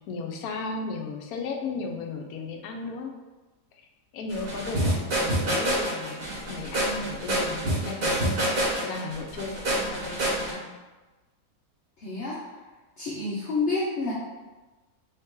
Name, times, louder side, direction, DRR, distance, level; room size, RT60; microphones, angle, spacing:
voice 1, 0.1-3.1 4.1-10.7, left 3 dB, 80° left, 3 dB, 1.1 m, -35 dB
sound 1, 4.3-10.5, right 1 dB, 85° right, 1.9 m, -27 dB
voice 2, 12.0-12.4 13.0-14.1, left 3 dB, 60° left, -6 dB, 0.9 m, -28 dB
3.8 x 2.8 x 3.6 m, 1.2 s
omnidirectional pair, 1.5 m